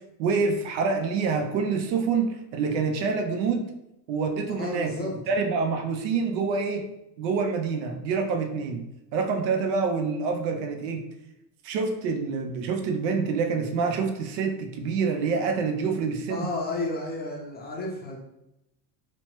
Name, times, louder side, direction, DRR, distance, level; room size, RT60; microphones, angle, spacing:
voice 1, 0.2-3.6 4.1-6.9 7.2-8.8 9.1-11.1 11.6-16.5, right 5 dB, 80° right, 4 dB, 0.7 m, -26 dB
voice 2, 4.6-5.1 16.3-18.2, left 2 dB, 20° left, -1 dB, 0.4 m, -32 dB
2.9 x 2.1 x 2.9 m, 0.86 s
supercardioid pair, 105°, 50 cm